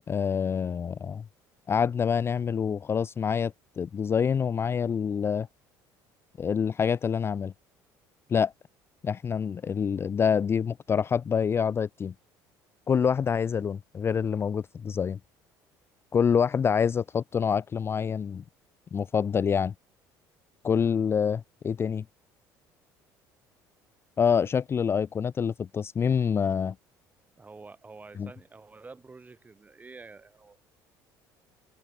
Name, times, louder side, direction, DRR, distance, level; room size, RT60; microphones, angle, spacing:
voice 1, 0.1-1.2 1.7-5.5 6.4-7.5 8.3-8.5 9.0-12.1 12.9-15.2 16.1-18.4 18.9-19.7 20.6-22.0 24.2-26.8 28.2-28.3, left 7 dB, 30° left, 0.4 m, -26 dB
voice 2, 27.4-30.6, right 3 dB, 20° right, 2.3 m, -48 dB
supercardioid pair, 95°, 8 cm